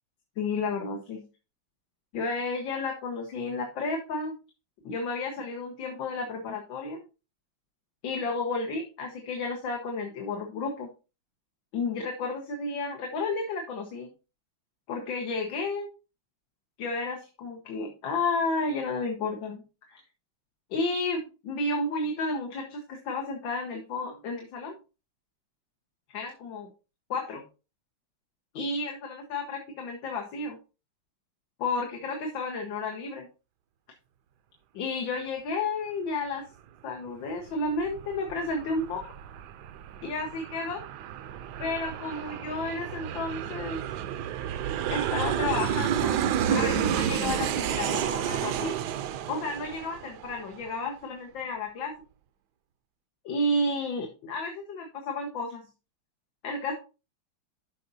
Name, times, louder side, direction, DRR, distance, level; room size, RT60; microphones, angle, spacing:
voice 1, 0.4-1.2 2.1-4.3 4.8-7.0 8.0-10.9 11.7-14.1 14.9-15.9 16.8-19.6 19.9-20.0 20.7-24.8 26.1-26.7 27.1-27.4 28.5-30.6 31.6-33.3 34.7-36.4 36.8-39.0 40.0-40.8 41.6-43.8 44.9-46.2 46.5-48.7 49.3-51.9 53.3-55.6 56.4-56.7, left 3 dB, 90° left, 2 dB, 2.0 m, -32 dB
Aircraft, 37.5-50.7, right 9 dB, 70° right, 1.1 m, -31 dB
13.0 x 5.7 x 2.7 m, 0.31 s
omnidirectional pair, 2.1 m